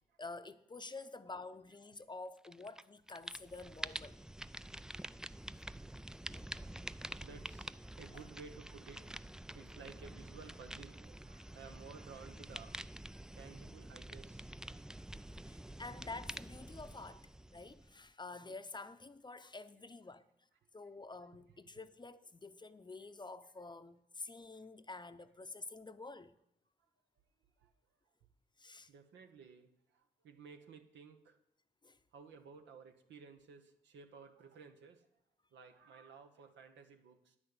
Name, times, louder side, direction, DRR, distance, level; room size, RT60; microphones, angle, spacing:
voice 1, 0.0-4.2 8.1-8.2 15.4-20.3 20.7-26.3 28.6-28.9 31.8-32.0, left 3 dB, 25° left, 0.7 m, -49 dB
sound 1, 2.4-2.8 3.1-18.1, right 1 dB, 5° right, 0.3 m, -48 dB
voice 2, 7.1-15.5 21.5-21.6 27.6-27.7 28.9-31.4 32.1-35.1 35.5-37.4, right 5 dB, 80° right, 1.1 m, -56 dB
9.2 x 6.2 x 7.9 m
supercardioid pair, 45°, 19 cm